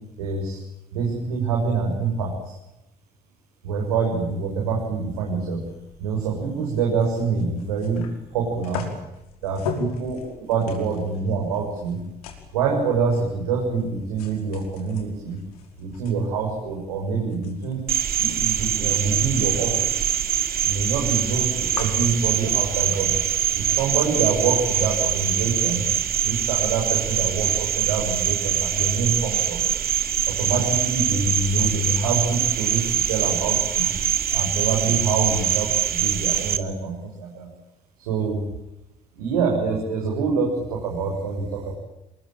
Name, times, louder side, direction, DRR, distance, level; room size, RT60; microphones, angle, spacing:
voice 1, 0.2-0.6 0.9-2.6 3.6-5.6 6.0-8.0 8.3-8.8 9.4-12.0 12.5-15.4 15.8-17.9 18.2-20.1 20.6-23.1 23.5-25.8 26.2-29.6 30.2-33.9 34.3-37.5 38.0-38.4 39.2-41.7, right 4 dB, 75° right, -1 dB, 7.4 m, -25 dB
sound 1, 5.6-23.0, left 5 dB, 75° left, 5.2 m, -40 dB
Cricket, 17.9-36.6, right 10 dB, 50° right, 2.8 m, -24 dB
29.0 x 22.5 x 9.2 m, 0.89 s
figure-of-eight pair, 45°, 19 cm